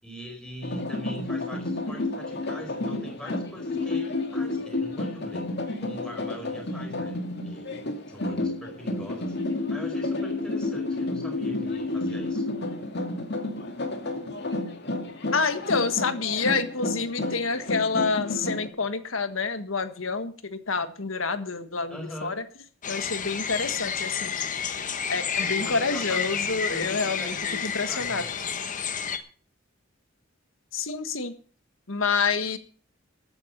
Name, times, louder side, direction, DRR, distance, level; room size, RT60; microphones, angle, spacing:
voice 1, 0.0-5.4 5.8-7.1 7.4-7.7 8.1-12.4 21.9-22.4 25.4-28.3, equal, 5° left, 1 dB, 5.1 m, -42 dB
sound 1, 0.6-18.7, left 2 dB, 55° left, 2.3 m, -31 dB
voice 2, 15.3-22.4 22.9-24.3 25.1-27.3 27.6-28.2 30.7-31.3 31.9-32.6, left 4 dB, 80° left, 10 dB, 1.6 m, -28 dB
sound 2, 22.8-29.2, left 6 dB, 40° left, 1.2 m, -30 dB
13.5 x 9.1 x 6.7 m, 0.42 s
head